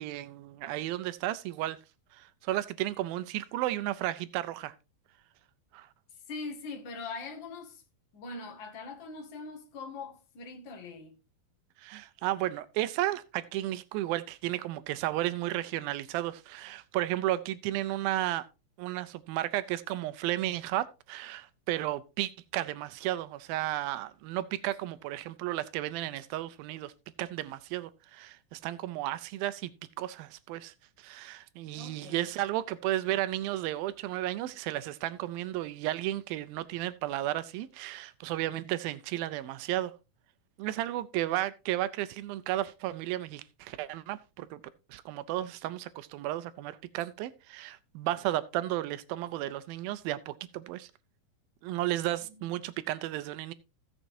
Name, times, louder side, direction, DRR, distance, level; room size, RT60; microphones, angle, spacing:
voice 1, 0.0-1.8 2.1-4.7 5.7-5.9 11.8-18.4 18.8-26.9 27.2-29.7 30.0-39.9 40.6-44.6 44.9-50.9 51.6-53.5, right 15 dB, 85° right, 2.5 m, -33 dB
voice 2, 6.3-7.8 8.1-11.2 31.7-32.3 52.2-52.6, left 3 dB, 40° left, 2.1 m, -42 dB
16.5 x 7.2 x 2.7 m
omnidirectional pair, 4.1 m